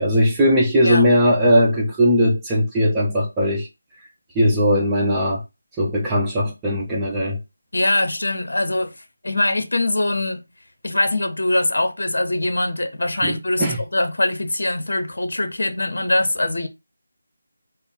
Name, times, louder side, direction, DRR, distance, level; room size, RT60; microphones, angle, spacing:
voice 1, 0.0-3.7 4.3-5.4 5.8-7.4 13.2-13.8, equal, 10° right, 0.8 m, -19 dB
voice 2, 7.7-8.9 9.2-10.4 10.8-16.7, left 1 dB, 65° left, 0.7 m, -22 dB
3.3 x 2.0 x 4.1 m
figure-of-eight pair, 160°, 0 cm